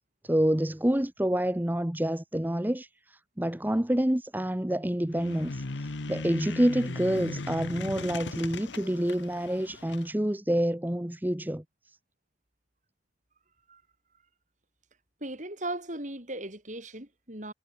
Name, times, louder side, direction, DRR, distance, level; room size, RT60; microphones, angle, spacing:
voice 1, 0.2-11.6, right 1 dB, 10° right, 0.8 m, -28 dB
sound 1, 5.1-10.1, left 3 dB, 85° left, 1.1 m, -38 dB
voice 2, 15.2-17.5, right 1 dB, 40° right, 7.7 m, -37 dB
head